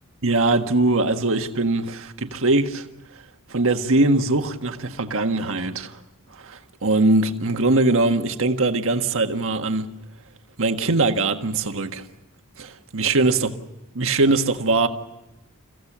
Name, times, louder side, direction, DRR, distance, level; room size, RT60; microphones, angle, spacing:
voice 1, 0.2-2.9 3.5-6.0 6.4-9.9 10.6-12.0 12.6-13.5 13.9-14.9, right 2 dB, 60° right, 1.6 m, -21 dB
30.0 x 15.5 x 7.4 m
head